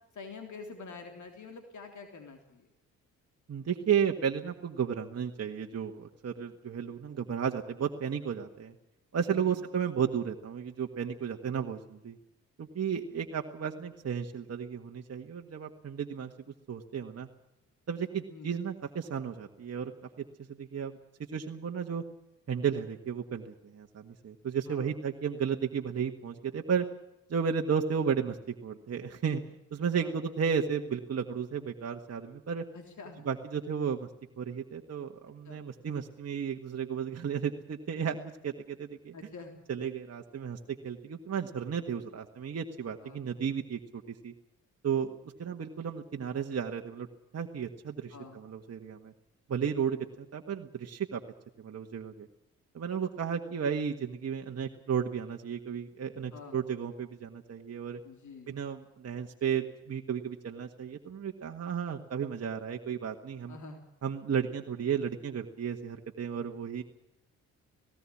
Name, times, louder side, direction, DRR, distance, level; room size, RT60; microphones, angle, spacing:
voice 1, 0.1-2.7 9.3-9.6 18.3-18.6 24.7-24.9 30.0-30.1 32.7-33.3 35.5-35.6 39.1-39.6 43.0-43.2 48.1-48.4 56.3-56.6 58.0-58.6 63.5-63.8, left 4 dB, 60° left, 5 dB, 3.5 m, -46 dB
voice 2, 3.5-8.7 9.1-12.2 12.6-16.3 16.7-17.3 17.9-19.9 20.2-21.0 21.3-22.0 22.5-26.8 27.3-29.4 29.7-32.6 33.2-34.1 34.4-38.2 38.4-39.1 39.7-44.3 44.8-45.1 45.4-47.1 47.3-49.1 49.5-50.0 50.3-51.2 51.6-52.3 52.7-58.0 58.5-63.6 64.0-66.8, right 7 dB, 45° right, 2 dB, 1.7 m, -33 dB
18.5 x 17.5 x 8.6 m, 0.88 s
supercardioid pair, 55°, 34 cm